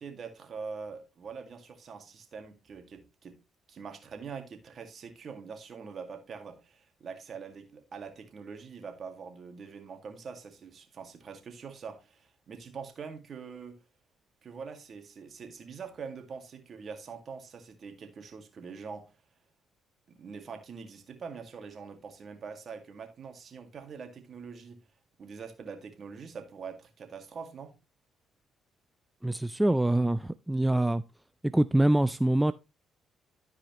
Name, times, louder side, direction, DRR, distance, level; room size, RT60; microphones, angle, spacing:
voice 1, 0.0-3.3 3.7-13.8 14.4-19.1 20.1-24.8 25.2-27.7, right 5 dB, 55° right, 2.0 m, -44 dB
voice 2, 29.2-31.0 31.4-32.5, right 1 dB, 10° right, 0.4 m, -25 dB
13.5 x 4.9 x 3.0 m
supercardioid pair, 60°, 0 cm